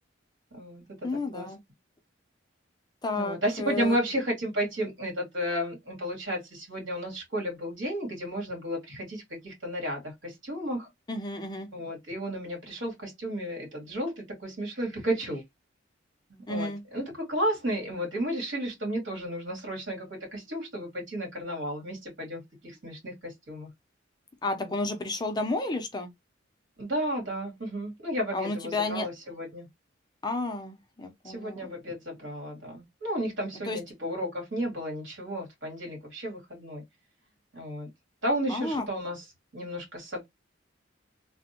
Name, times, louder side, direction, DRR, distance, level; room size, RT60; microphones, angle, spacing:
voice 1, 0.5-0.8 1.3-1.5 3.1-10.9 11.7-15.4 16.3-23.7 24.6-24.8 26.8-29.7 31.2-36.8 37.5-37.9 38.2-39.3 39.5-40.3, equal, 70° right, 2.1 m, -33 dB
voice 2, 1.0-1.6 3.0-4.0 11.1-11.7 16.5-16.8 24.4-26.1 28.3-29.1 30.2-31.7 33.7-33.8 38.5-38.8, left 2 dB, 20° left, 0.5 m, -31 dB
3.4 x 2.1 x 2.7 m
head